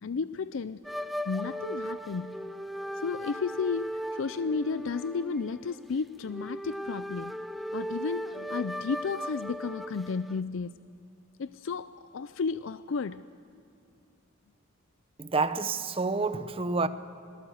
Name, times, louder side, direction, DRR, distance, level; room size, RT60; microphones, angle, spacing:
voice 1, 0.0-2.4 3.0-7.3 7.7-10.7 11.4-13.2, left 5 dB, 65° left, 0.5 m, -33 dB
sound 1, 0.8-10.4, equal, ahead, 0.5 m, -37 dB
voice 2, 15.2-16.9, right 3 dB, 25° right, 0.8 m, -28 dB
25.5 x 18.5 x 7.9 m
head